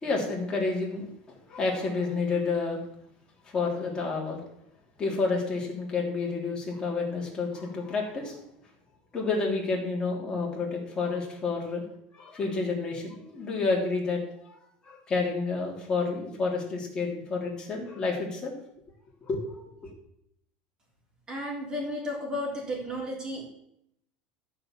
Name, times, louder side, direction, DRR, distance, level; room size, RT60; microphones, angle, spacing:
voice 1, 0.0-2.8 3.4-4.4 5.0-8.4 9.1-11.8 12.1-14.6 14.8-18.5 19.2-19.9, left 4 dB, 20° left, -2 dB, 3.3 m, -30 dB
voice 2, 21.3-23.5, left 1 dB, 20° right, -2 dB, 3.6 m, -33 dB
13.5 x 5.0 x 7.4 m, 0.78 s
supercardioid pair, 145°, 4 cm